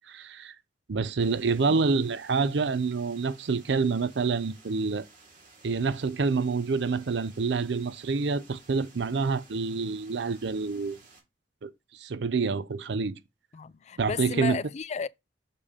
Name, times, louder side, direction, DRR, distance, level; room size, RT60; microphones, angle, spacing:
voice 1, 0.1-0.5 0.9-5.1 5.6-11.0 11.6-13.2 14.0-14.6, right 4 dB, 70° right, 0.5 m, -27 dB
sound 1, 1.2-11.2, right 3 dB, 50° right, 3.3 m, -56 dB
voice 2, 13.5-15.1, left 6 dB, 40° left, 0.4 m, -33 dB
6.7 x 5.1 x 3.6 m
head